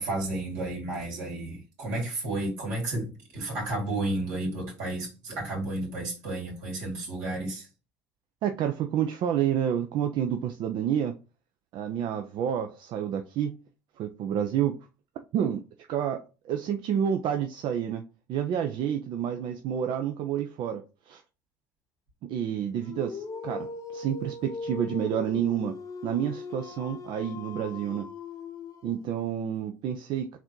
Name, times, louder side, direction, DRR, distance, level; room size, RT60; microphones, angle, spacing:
voice 1, 0.0-7.7, right 2 dB, 85° right, 2.5 m, -32 dB
voice 2, 8.4-11.2 11.7-13.6 14.0-14.8 15.3-18.0 18.3-21.2 22.2-25.8 26.0-28.1 28.8-30.4, right 9 dB, 65° right, 0.5 m, -29 dB
Dog, 22.8-29.1, left 4 dB, 45° left, 0.8 m, -39 dB
4.0 x 2.7 x 4.5 m
supercardioid pair, 70°, 9 cm